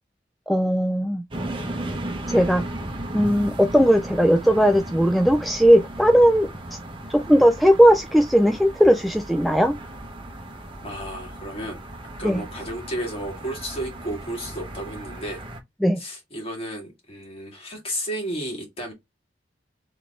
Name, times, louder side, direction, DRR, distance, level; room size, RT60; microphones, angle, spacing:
voice 1, 0.5-1.2 2.3-2.6 3.1-6.5 7.1-9.7 12.2-12.4 15.8-16.0, equal, ahead, 0.3 m, -18 dB
sound 1, 1.3-15.6, right 1 dB, 30° right, 0.9 m, -36 dB
voice 2, 10.8-11.8 12.2-15.4 16.0-18.9, right 1 dB, 35° left, 2.0 m, -33 dB
3.9 x 3.3 x 3.6 m
head